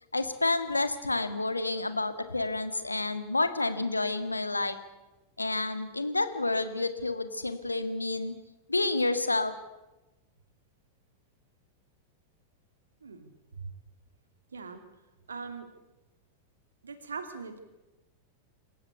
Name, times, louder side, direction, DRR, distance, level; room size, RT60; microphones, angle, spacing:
voice 1, 0.1-4.8 5.4-8.3 8.7-9.5, left 2 dB, 80° left, 11 dB, 1.7 m, -29 dB
voice 2, 15.3-15.7 16.8-17.6, right 4 dB, 70° right, 8 dB, 2.7 m, -40 dB
27.0 x 15.0 x 8.2 m, 1.0 s
figure-of-eight pair, 90°, 0 cm